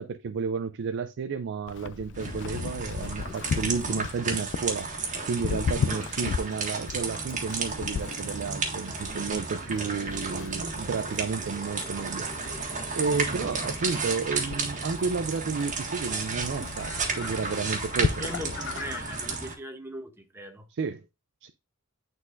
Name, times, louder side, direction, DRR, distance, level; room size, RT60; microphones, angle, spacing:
voice 1, 0.0-4.9 5.3-12.3 13.0-18.2 20.7-21.0 21.4-21.5, right 5 dB, 55° right, 0.4 m, -32 dB
Livestock farm animals working animals, 1.7-19.4, left 6 dB, 55° left, 0.4 m, -36 dB
sound 1, 2.1-19.5, right 4 dB, 35° right, 1.6 m, -33 dB
voice 2, 18.0-20.7, equal, 10° right, 0.8 m, -40 dB
9.6 x 4.0 x 2.5 m
head